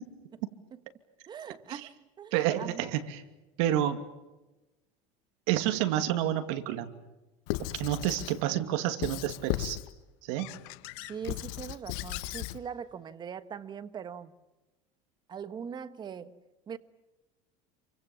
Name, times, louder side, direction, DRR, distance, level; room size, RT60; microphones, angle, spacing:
voice 1, 1.3-3.0 11.1-14.3 15.3-16.8, right 7 dB, 30° right, 1.3 m, -41 dB
voice 2, 2.3-3.2 3.6-4.0 5.5-6.9 7.6-9.8 10.2-10.5, right 12 dB, 75° right, 2.6 m, -29 dB
Squeak / Writing, 7.5-8.4 9.0-9.9 10.4-12.6, left 17 dB, 70° left, 1.2 m, -36 dB
28.5 x 24.5 x 7.2 m
supercardioid pair, 135°, 16 cm